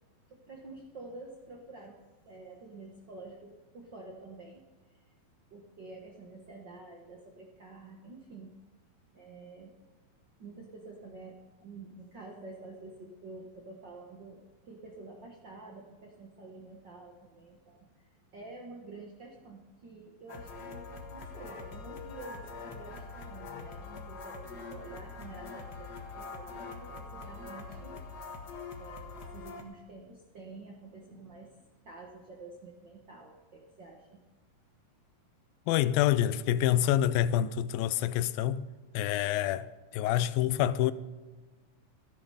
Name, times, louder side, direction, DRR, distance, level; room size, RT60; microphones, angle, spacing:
voice 1, 0.3-2.0 2.2-5.1 5.5-8.5 9.1-9.7 10.4-28.0 28.8-34.2, right 3 dB, 65° right, 1.1 m, -49 dB
sound 1, 20.3-29.6, left 4 dB, 45° left, 1.3 m, -43 dB
voice 2, 35.7-38.6 38.9-39.7 39.9-40.9, left 12 dB, 85° left, 2.3 m, -27 dB
14.0 x 11.5 x 5.5 m
omnidirectional pair, 4.1 m